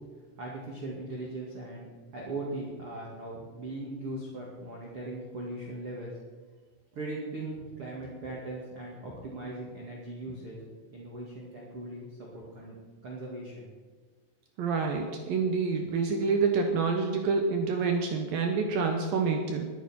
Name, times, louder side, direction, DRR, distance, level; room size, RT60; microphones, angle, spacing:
voice 1, 0.4-6.1 6.9-10.6 10.9-12.8 13.0-13.7, right 2 dB, 45° right, -4 dB, 2.0 m, -39 dB
voice 2, 14.6-19.7, right 4 dB, 75° right, 3 dB, 2.1 m, -27 dB
22.0 x 8.5 x 4.4 m, 1.5 s
omnidirectional pair, 5.6 m